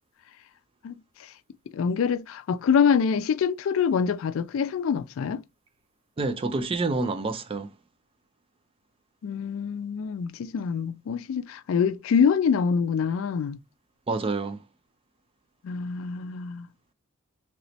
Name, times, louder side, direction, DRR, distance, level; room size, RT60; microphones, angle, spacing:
voice 1, 1.7-5.4 9.2-13.6 15.6-16.7, left 6 dB, 70° left, 0.3 m, -25 dB
voice 2, 6.2-7.7 14.1-14.6, right 3 dB, 25° right, 0.4 m, -28 dB
3.0 x 3.0 x 2.7 m
head